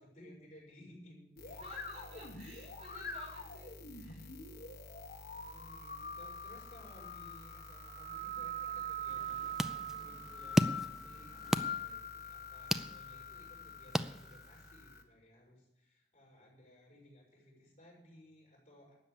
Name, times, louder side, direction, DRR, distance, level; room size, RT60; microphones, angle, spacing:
voice 1, 0.0-1.6 5.3-18.9, left 1 dB, 40° left, -3 dB, 6.3 m, -59 dB
sound 1, 1.4-15.0, equal, 55° left, 1.6 m, -44 dB
voice 2, 1.6-4.3, equal, 40° right, -5 dB, 5.6 m, -55 dB
sound 2, 9.1-14.7, equal, 5° right, 0.4 m, -37 dB
12.5 x 8.5 x 7.1 m, 0.85 s
head